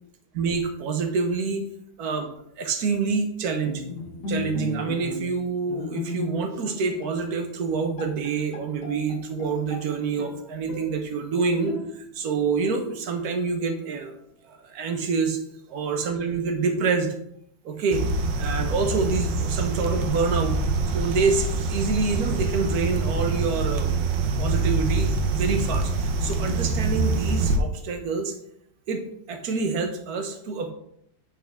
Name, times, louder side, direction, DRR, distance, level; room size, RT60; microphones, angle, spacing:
voice 1, 0.3-1.6 2.0-2.3 2.6-3.8 4.3-14.1 14.4-15.4 15.7-17.1 17.6-18.0 18.4-20.6 20.9-25.9 26.2-28.4 28.9-30.7, right 4 dB, 60° right, 5 dB, 1.3 m, -27 dB
Bowed string instrument, 3.6-6.7 7.0-7.2 7.7-7.8 8.0-9.9 10.2-11.0 11.7-12.3, left 3 dB, 65° left, 1.7 m, -35 dB
sound 1, 17.9-27.6, right 3 dB, 75° right, 1.4 m, -25 dB
8.5 x 4.5 x 3.5 m, 0.72 s
omnidirectional pair, 2.0 m